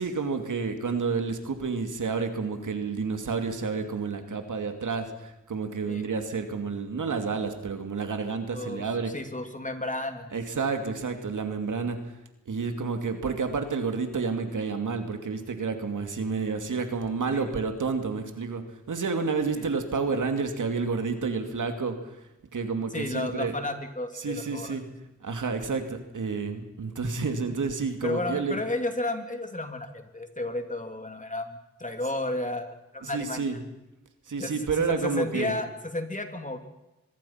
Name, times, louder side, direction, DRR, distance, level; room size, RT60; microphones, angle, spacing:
voice 1, 0.0-9.1 10.3-12.1 12.5-22.2 22.5-23.5 24.1-24.8 25.2-28.6 33.0-33.6 34.3-35.5, right 4 dB, 90° right, 6 dB, 2.6 m, -30 dB
voice 2, 8.5-8.8 9.1-10.3 17.3-17.5 19.6-19.7 22.9-24.8 28.0-33.6 34.4-34.5 34.8-36.6, left 2 dB, 25° left, 6 dB, 3.3 m, -32 dB
25.0 x 22.0 x 5.8 m, 0.99 s
cardioid pair, 55°, 30 cm